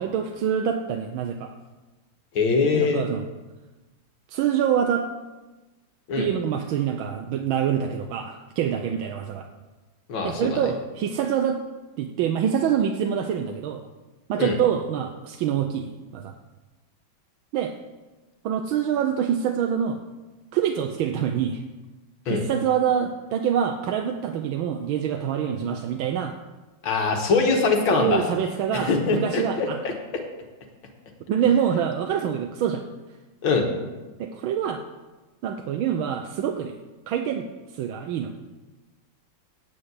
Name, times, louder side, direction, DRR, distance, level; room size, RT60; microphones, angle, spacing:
voice 1, 0.0-1.5 2.7-3.2 4.3-5.1 6.2-9.5 10.2-11.6 12.0-13.8 14.3-16.3 17.5-17.7 18.4-20.0 20.5-21.6 22.3-26.3 27.9-29.8 31.3-32.8 34.2-34.8 35.4-36.7 37.1-37.5 37.7-38.3, right 8 dB, 80° right, 4 dB, 1.5 m, -25 dB
voice 2, 2.4-3.1 6.1-6.3 10.1-10.6 14.4-14.5 22.3-22.4 26.8-28.2 28.7-29.9 33.4-33.7, left 4 dB, 80° left, 2 dB, 2.2 m, -22 dB
9.1 x 7.9 x 8.1 m, 1.2 s
omnidirectional pair, 2.2 m